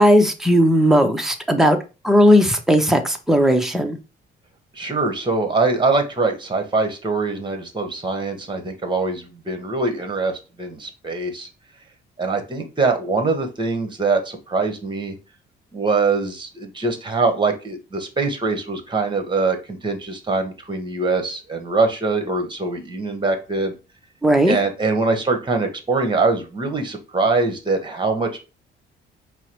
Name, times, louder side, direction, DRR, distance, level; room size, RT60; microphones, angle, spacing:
voice 1, 0.0-1.8 2.0-4.0 24.2-24.6, equal, ahead, 5 dB, 0.7 m, -16 dB
voice 2, 4.7-11.5 12.2-15.1 15.7-23.7 24.5-28.4, right 3 dB, 25° right, 6 dB, 1.2 m, -23 dB
4.5 x 2.1 x 4.4 m, 0.30 s
cardioid pair, 90°, 20 cm